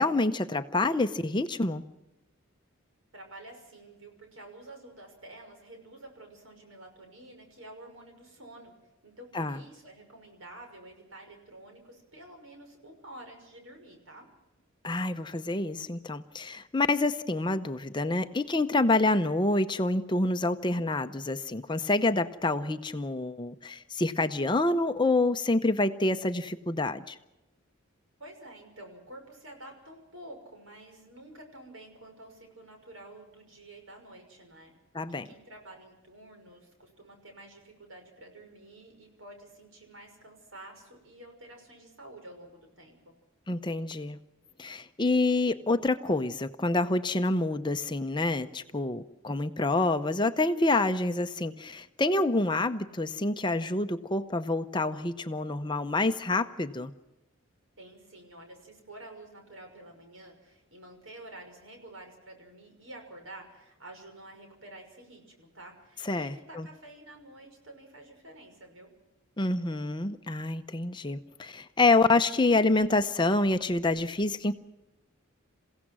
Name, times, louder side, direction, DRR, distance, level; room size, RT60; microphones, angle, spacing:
voice 1, 0.0-1.8 9.3-9.6 14.8-27.2 34.9-35.3 43.5-44.2 44.6-56.9 66.0-66.7 69.4-74.5, left 2 dB, 20° left, 9 dB, 0.7 m, -27 dB
voice 2, 3.1-8.7 9.0-14.3 28.2-34.7 35.1-43.1 57.8-68.9, right 1 dB, 70° right, 4 dB, 6.0 m, -49 dB
28.5 x 16.5 x 6.1 m, 1.0 s
head